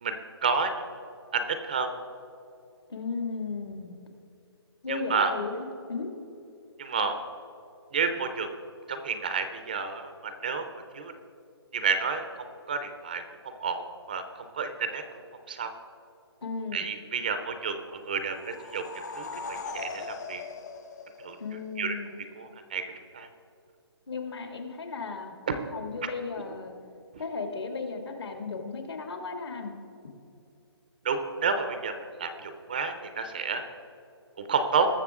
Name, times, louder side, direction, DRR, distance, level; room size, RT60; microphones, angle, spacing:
voice 1, 0.0-1.0 1.3-1.9 4.9-5.3 6.8-7.1 7.9-8.5 8.9-10.6 10.9-11.1 11.7-12.2 12.7-13.2 13.6-13.8 14.1-14.2 14.5-15.0 15.5-15.7 16.7-18.8 19.2-20.4 21.2-21.4 21.8-22.0 22.4-22.8 23.1-23.3 25.5-25.6 31.0-31.9 32.2-33.6 34.4-34.9, right 5 dB, 20° right, 8 dB, 0.4 m, -30 dB
voice 2, 2.9-4.0 4.8-6.1 16.4-16.9 21.4-22.1 24.1-25.3 25.7-26.7 27.2-29.7, left 4 dB, 65° left, 3 dB, 2.2 m, -35 dB
sound 1, 18.2-21.7, left 4 dB, 40° left, 0.9 m, -39 dB
20.0 x 6.8 x 3.6 m, 2.6 s
hypercardioid pair, 170°, 14 cm